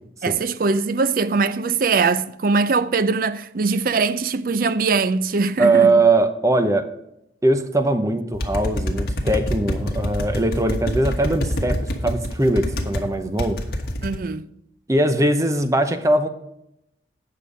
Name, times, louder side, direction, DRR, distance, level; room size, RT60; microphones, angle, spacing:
voice 1, 0.2-5.9 14.0-14.5, right 4 dB, 50° right, 0.4 m, -21 dB
voice 2, 5.6-6.9 7.4-13.6 14.9-16.3, right 2 dB, 15° right, 0.7 m, -20 dB
sound 1, 8.3-13.0 13.4-14.2, equal, 55° left, 1.4 m, -25 dB
9.0 x 6.7 x 5.1 m
head